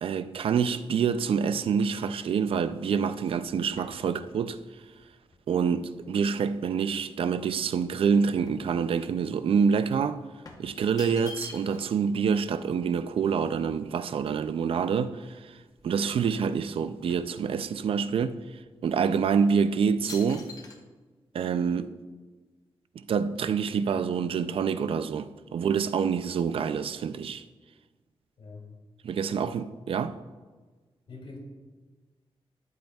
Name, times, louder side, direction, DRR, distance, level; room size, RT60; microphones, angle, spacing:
voice 1, 0.0-4.6 5.5-10.2 10.6-15.6 15.8-18.4 18.8-20.5 21.3-21.9 23.0-27.4 29.0-30.2, right 6 dB, 70° right, 0.4 m, -27 dB
sound 1, 1.7-6.6 7.1-9.2 9.5-9.7 10.4-12.0 12.3-12.4 12.6-14.8 15.3-15.4 15.7-16.5 16.7-18.0 18.5-18.7 19.3-19.6 20.1-20.8, left 2 dB, 40° left, 0.9 m, -48 dB
voice 2, 29.2-29.6 31.1-31.4, left 3 dB, 65° left, 2.3 m, -44 dB
12.0 x 8.0 x 2.3 m
wide cardioid pair, 160°, 10 cm